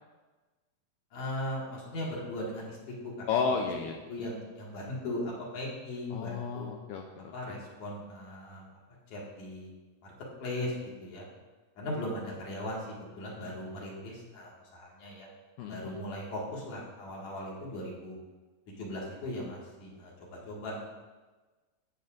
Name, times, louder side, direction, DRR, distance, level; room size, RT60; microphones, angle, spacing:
voice 1, 1.1-3.3 3.6-3.7 4.1-6.7 7.3-8.7 9.1-9.7 10.0-10.1 10.4-10.7 11.0-11.3 11.8-12.9 13.2-15.3 15.7-18.2 18.7-20.8, left 1 dB, 55° left, -4 dB, 3.0 m, -38 dB
voice 2, 3.3-4.0 6.1-7.6 15.6-15.9, left 5 dB, 80° left, 2 dB, 2.0 m, -33 dB
17.0 x 6.8 x 2.6 m, 1.3 s
omnidirectional pair, 4.4 m